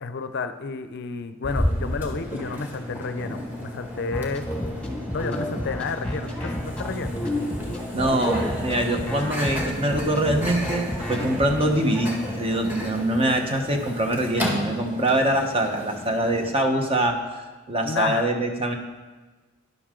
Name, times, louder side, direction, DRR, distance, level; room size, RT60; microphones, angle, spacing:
voice 1, 0.0-4.5 5.1-7.2 17.8-18.3, left 4 dB, 55° left, 9 dB, 0.6 m, -31 dB
Microwave oven, 1.4-16.5, equal, 10° right, 1.9 m, -32 dB
sound 1, 4.1-11.6, left 1 dB, 5° left, 1.8 m, -31 dB
voice 2, 7.9-17.2 17.7-18.7, right 1 dB, 30° right, 4 dB, 1.2 m, -24 dB
12.5 x 11.0 x 3.8 m, 1.3 s
head